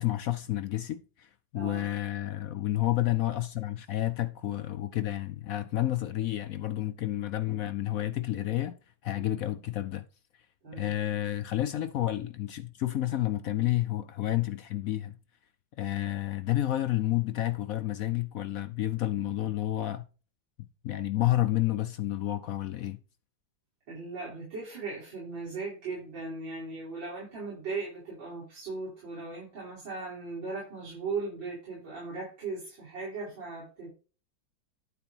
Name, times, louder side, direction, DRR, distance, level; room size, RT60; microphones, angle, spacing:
voice 1, 0.0-8.8 9.0-10.1 10.7-15.2 15.8-20.1 20.8-23.0, left 14 dB, 70° left, 0.8 m, -30 dB
voice 2, 1.6-1.9 9.3-9.5 10.6-10.9 23.9-33.9, right 3 dB, 75° right, 5.6 m, -38 dB
11.5 x 4.4 x 5.4 m
omnidirectional pair, 2.0 m